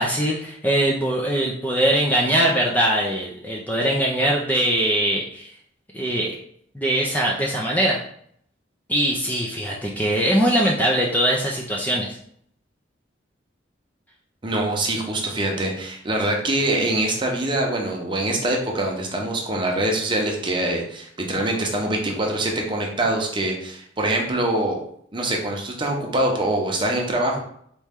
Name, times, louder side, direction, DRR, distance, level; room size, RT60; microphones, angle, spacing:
voice 1, 0.0-5.5 5.9-6.4 6.7-8.0 8.9-12.2, right 1 dB, 10° left, -2 dB, 0.5 m, -21 dB
voice 2, 14.4-24.8 25.1-27.4, right 1 dB, 25° right, 0 dB, 0.8 m, -24 dB
4.3 x 3.0 x 3.6 m, 0.66 s
head